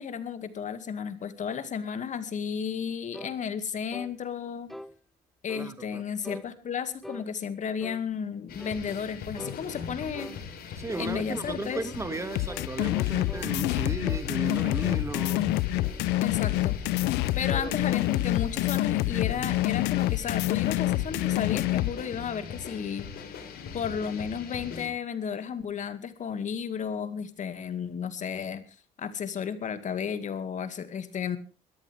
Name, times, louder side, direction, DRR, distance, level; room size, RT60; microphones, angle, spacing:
voice 1, 0.0-4.7 5.4-10.3 11.0-11.8 16.2-16.8 17.4-23.1 23.7-28.6 29.0-31.4, left 7 dB, 45° left, 11 dB, 2.2 m, -33 dB
sound 1, 3.1-3.4 3.9-4.1 4.7-4.9 5.5-5.7 6.2-6.5 7.0-7.3 7.8-8.1 8.6-8.8 9.4-9.6 10.1-10.4 10.9-11.2 11.7-11.9 12.5-12.7 13.3-13.5 14.0-14.3 14.6-15.1, equal, ahead, 0.9 m, -42 dB
voice 2, 5.5-6.0 10.0-10.1 10.8-15.6 17.5-18.0, right 2 dB, 15° right, 10 dB, 2.2 m, -35 dB
sound 2, 8.5-24.9, left 6 dB, 60° left, 4.9 m, -40 dB
sound 3, 12.4-21.9, left 17 dB, 90° left, 0.6 m, -27 dB
21.5 x 14.0 x 3.5 m, 0.35 s
cardioid pair, 110°, 17 cm